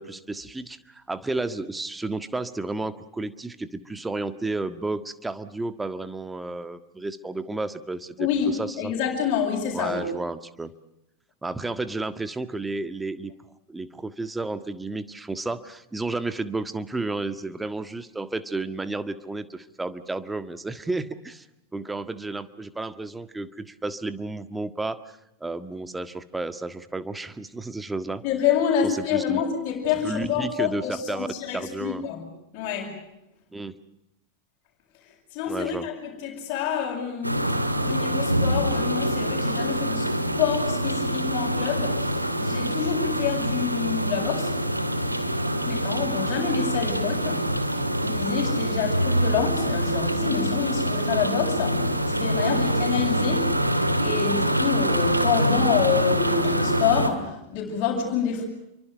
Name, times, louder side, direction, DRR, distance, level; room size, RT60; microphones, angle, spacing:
voice 1, 0.0-8.9 9.7-10.7 11.4-13.3 13.7-21.5 21.7-28.2 28.8-29.4 30.0-31.3 31.5-32.0 33.5-33.7 35.5-35.9, right 2 dB, 10° right, 1.6 m, -32 dB
voice 2, 8.2-10.0 28.2-32.3 32.5-33.0 35.3-40.1 40.4-44.5 45.6-47.5 48.0-53.6 54.0-58.4, left 7 dB, 40° left, 7.9 m, -27 dB
sound 1, 37.2-57.1, right 1 dB, 85° right, 2.2 m, -25 dB
29.0 x 24.5 x 6.7 m
figure-of-eight pair, 90°, 0 cm